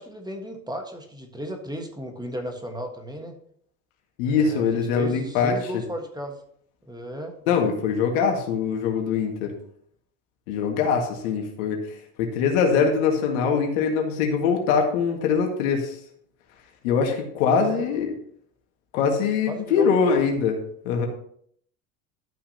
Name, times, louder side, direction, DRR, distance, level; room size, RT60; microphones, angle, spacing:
voice 1, 0.0-3.4 4.2-6.4 6.8-7.3 17.5-17.9 19.5-19.9, equal, 10° right, 4 dB, 1.4 m, -35 dB
voice 2, 4.2-5.8 7.5-9.5 10.5-11.8 12.2-16.0 16.8-18.1 18.9-20.6 20.9-21.1, left 6 dB, 75° left, 3 dB, 1.9 m, -23 dB
12.5 x 5.9 x 2.8 m, 0.65 s
hypercardioid pair, 90°, 41 cm